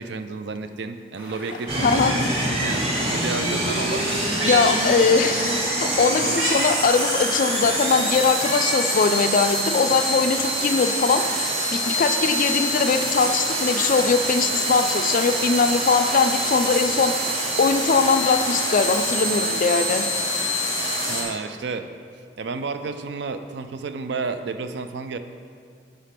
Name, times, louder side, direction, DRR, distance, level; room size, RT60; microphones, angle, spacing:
voice 1, 0.0-4.1 6.2-6.4 21.1-21.9 22.4-25.2, right 4 dB, 60° right, 9 dB, 0.4 m, -31 dB
sound 1, 1.1-19.6, equal, 10° right, 1.0 m, -41 dB
sound 2, 1.7-21.2, right 1 dB, 30° right, 1.2 m, -25 dB
voice 2, 1.8-2.1 4.4-20.1, left 5 dB, 45° left, 8 dB, 0.3 m, -21 dB
Meow, 4.2-5.6 5.9-6.8 7.1-7.2 8.3-9.0 9.5-9.6 10.6-11.6 13.1-14.1 15.5-16.3 17.8-19.4 20.6-20.7, right 2 dB, 85° right, 1.1 m, -33 dB
5.7 x 5.0 x 5.8 m, 2.2 s
head